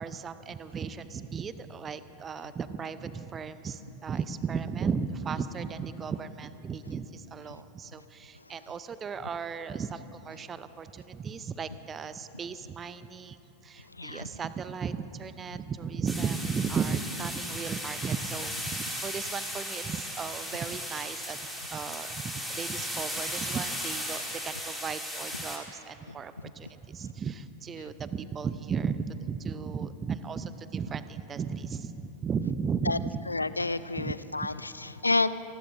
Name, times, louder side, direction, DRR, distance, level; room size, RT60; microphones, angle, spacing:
voice 1, 0.0-21.4 21.7-33.2 34.0-34.1, right 6 dB, 20° right, 13 dB, 0.6 m, -35 dB
voice 2, 14.0-14.3 26.1-26.2 32.9-33.0 33.3-35.3, left 3 dB, 80° left, 15 dB, 0.4 m, -29 dB
sound 1, 16.1-25.6, equal, ahead, 2.5 m, -36 dB
27.0 x 19.5 x 2.6 m, 3.0 s
figure-of-eight pair, 90°, 0 cm